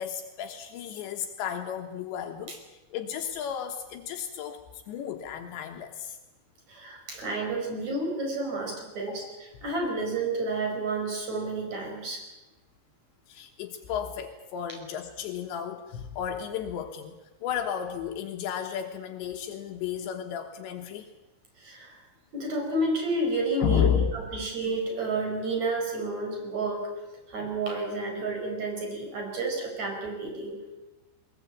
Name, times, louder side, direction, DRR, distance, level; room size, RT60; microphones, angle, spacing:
voice 1, 0.0-2.6 2.9-6.2 9.0-9.3 13.3-17.1 17.4-21.1 23.6-24.1, left 9 dB, 80° left, 4 dB, 3.6 m, -32 dB
voice 2, 6.7-9.2 9.6-12.2 21.6-22.0 22.3-26.9 27.3-30.6, right 2 dB, 40° right, 2 dB, 6.1 m, -30 dB
21.0 x 20.0 x 8.6 m, 1.1 s
omnidirectional pair, 5.2 m